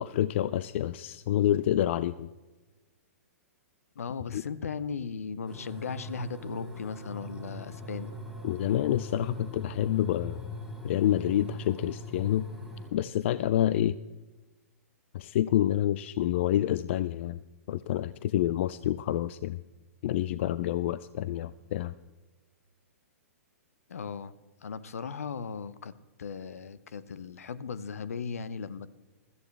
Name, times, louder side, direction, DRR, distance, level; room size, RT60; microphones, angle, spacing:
voice 1, 0.0-2.3 4.3-4.4 8.4-10.4 10.8-12.5 12.9-14.0 15.1-17.4 17.7-19.6 20.0-21.9, left 12 dB, 55° left, 17 dB, 0.4 m, -28 dB
voice 2, 4.0-8.1 23.9-24.3 24.6-28.9, left 6 dB, 75° left, 17 dB, 0.7 m, -37 dB
sound 1, 5.5-12.9, left 1 dB, ahead, 3.8 m, -41 dB
16.0 x 13.5 x 3.3 m, 1.2 s
hypercardioid pair, 115°, 8 cm